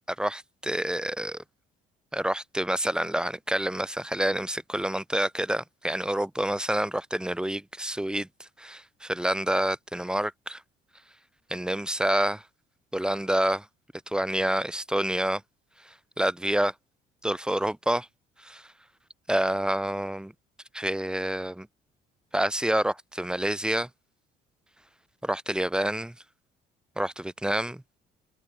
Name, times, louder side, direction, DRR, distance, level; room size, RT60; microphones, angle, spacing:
voice 1, 0.1-1.4 2.1-10.6 11.5-12.4 12.9-13.7 14.1-15.4 15.8-16.7 17.2-18.1 18.4-18.7 19.3-20.3 20.7-21.7 22.3-23.9 25.2-26.1 27.0-27.8, right 1 dB, 5° right, 6.3 m, -28 dB
cardioid pair, 110°, 17 cm